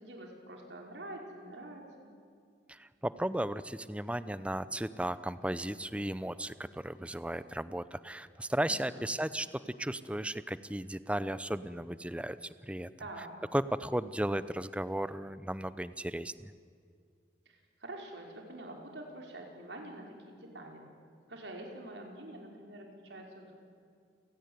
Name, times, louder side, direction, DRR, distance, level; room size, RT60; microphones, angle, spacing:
voice 1, 0.0-2.1 8.6-9.0 13.0-13.3 17.5-20.9 21.3-23.5, right 1 dB, 85° right, 1 dB, 5.1 m, -46 dB
voice 2, 2.7-12.4 12.6-12.9 13.5-16.5, right 1 dB, 5° right, 15 dB, 0.7 m, -35 dB
29.0 x 17.5 x 9.6 m, 2.3 s
head